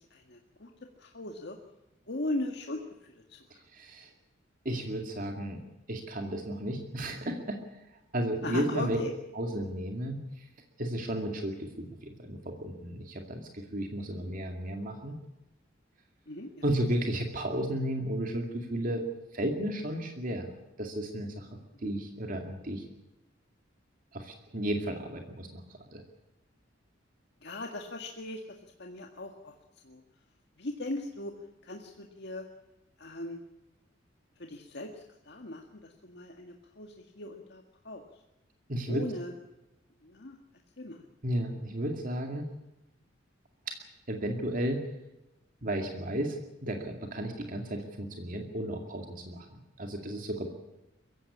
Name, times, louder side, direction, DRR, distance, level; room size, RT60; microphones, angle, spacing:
voice 1, 0.1-0.7 1.0-1.6 2.1-3.4 8.4-9.1 16.3-16.5 21.7-21.9 27.4-28.4 28.8-29.5 29.8-30.0 30.6-31.3 31.6-32.5 33.0-33.4 34.4-34.9 35.3-35.6 36.0-38.0 38.9-39.3 40.0-40.4 40.8-41.0, left 2 dB, 60° left, 3 dB, 1.9 m, -38 dB
voice 2, 3.5-4.1 4.6-5.6 5.9-9.0 9.3-10.5 10.8-15.1 16.6-19.0 19.3-20.5 20.8-21.5 21.8-22.8 24.1-26.0 38.7-39.0 41.2-42.5 43.7-43.8 44.1-44.9 45.6-50.5, right 1 dB, 45° right, 3 dB, 2.3 m, -33 dB
23.5 x 15.5 x 8.6 m, 0.95 s
head